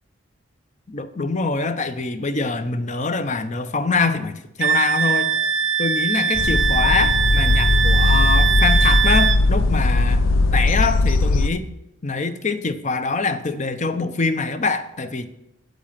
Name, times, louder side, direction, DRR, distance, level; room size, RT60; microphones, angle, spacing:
voice 1, 0.9-5.3 5.8-10.2 10.5-11.7 12.0-15.3, left 4 dB, 35° left, 11 dB, 0.8 m, -24 dB
Wind instrument woodwind instrument, 4.6-9.4, right 7 dB, 65° right, 0.7 m, -21 dB
sound 1, 6.3-11.5, left 2 dB, 70° left, 0.5 m, -18 dB
9.2 x 8.5 x 7.5 m, 0.85 s
head